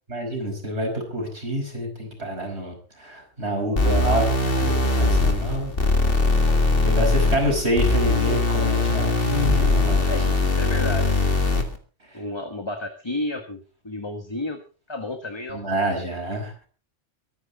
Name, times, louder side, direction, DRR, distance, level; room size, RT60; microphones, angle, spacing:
voice 1, 0.1-4.2 4.6-5.7 6.8-10.1 12.1-12.2 15.5-16.7, right 1 dB, 65° right, 2 dB, 5.6 m, -27 dB
voice 2, 3.6-4.3 10.1-11.1 12.1-13.6 13.8-14.6 14.9-15.6, left 2 dB, 25° left, 6 dB, 1.5 m, -31 dB
sound 1, 3.8-11.8, left 3 dB, 55° left, 2.4 m, -21 dB
23.5 x 9.7 x 4.0 m, 0.35 s
omnidirectional pair, 1.2 m